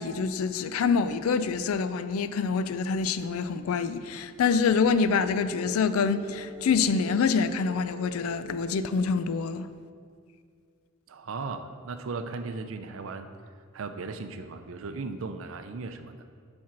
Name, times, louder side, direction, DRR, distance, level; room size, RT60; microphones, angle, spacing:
voice 1, 0.0-9.7, left 5 dB, 80° left, 0.4 m, -26 dB
sound 1, 4.8-9.4, right 2 dB, ahead, 2.1 m, -45 dB
voice 2, 11.1-13.3 13.7-16.2, right 4 dB, 65° right, 0.5 m, -37 dB
7.4 x 4.3 x 5.8 m
head